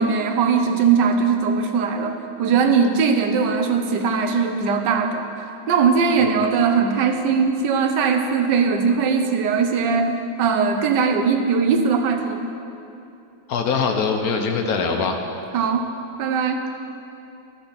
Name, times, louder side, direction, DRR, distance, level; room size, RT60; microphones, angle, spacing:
voice 1, 0.0-12.4 15.5-15.8 16.2-16.6, right 5 dB, 85° right, 5 dB, 1.5 m, -20 dB
voice 2, 13.5-15.1, left 5 dB, 65° left, 4 dB, 1.2 m, -23 dB
12.5 x 6.9 x 5.7 m, 2.7 s
omnidirectional pair, 1.8 m